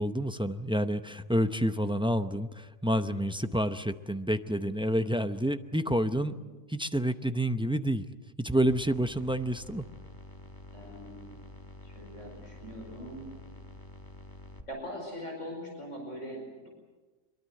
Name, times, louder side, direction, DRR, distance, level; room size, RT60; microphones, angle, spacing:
voice 1, 0.0-6.4 6.7-8.1 8.4-9.8, equal, 5° right, 9 dB, 0.4 m, -29 dB
sound 1, 8.6-14.6, left 1 dB, 15° left, 1.6 m, -48 dB
voice 2, 10.7-11.3 11.8-13.3 14.7-16.7, equal, 60° left, 1 dB, 5.3 m, -42 dB
24.5 x 22.5 x 7.7 m, 1.2 s
omnidirectional pair, 1.4 m